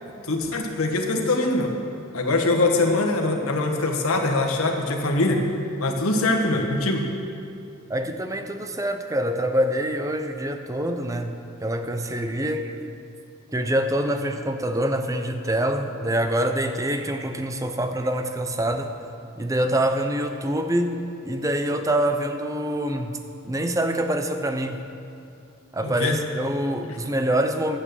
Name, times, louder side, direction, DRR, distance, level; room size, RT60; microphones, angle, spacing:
voice 1, 0.2-1.7 2.1-5.4 5.8-7.1 25.8-26.2 26.8-27.0, left 2 dB, 85° left, 2 dB, 1.5 m, -23 dB
voice 2, 7.9-11.3 11.6-12.8 13.5-18.9 19.4-23.2 23.4-24.8 25.7-27.8, right 1 dB, 15° right, 7 dB, 0.6 m, -25 dB
11.5 x 8.6 x 6.8 m, 2.7 s
head